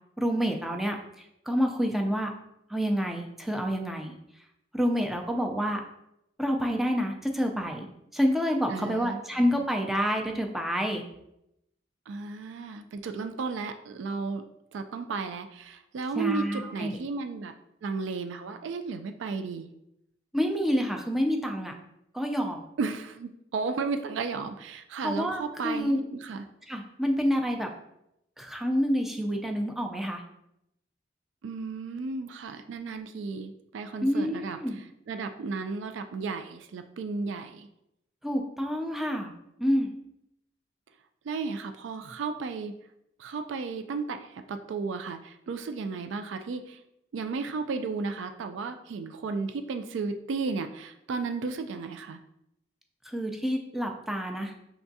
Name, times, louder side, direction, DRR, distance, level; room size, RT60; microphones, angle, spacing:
voice 1, 0.2-2.3 2.7-4.1 4.7-5.8 6.4-7.9 8.1-11.0 16.1-17.0 20.3-21.7 22.1-22.6 25.0-26.0 26.7-27.7 28.4-30.2 34.0-34.8 38.2-39.3 39.6-39.9 53.0-54.5, equal, ahead, 2 dB, 0.4 m, -28 dB
voice 2, 8.7-9.2 12.1-14.5 14.7-17.5 17.8-19.7 22.8-26.4 31.4-34.6 35.1-37.7 41.2-42.7 43.2-46.8 47.1-52.2, right 4 dB, 90° right, 8 dB, 0.3 m, -34 dB
5.8 x 3.5 x 2.7 m, 0.82 s
head